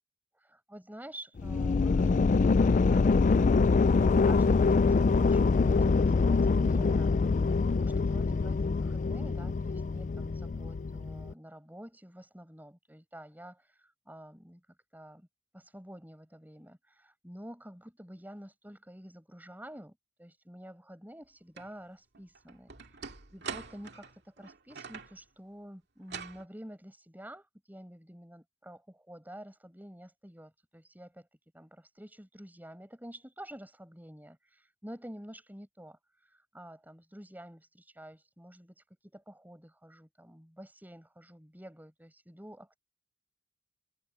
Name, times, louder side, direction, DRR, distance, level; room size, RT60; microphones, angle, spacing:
voice 1, 0.3-14.6 14.9-15.3 15.5-23.0 23.3-31.3 31.5-42.8, equal, 10° right, 7.2 m, -49 dB
sound 1, 1.4-11.3, left 4 dB, 40° left, 0.4 m, -25 dB
sound 2, 21.6-21.7 22.1-25.2 26.0-26.4, right 5 dB, 55° right, 2.4 m, -43 dB
head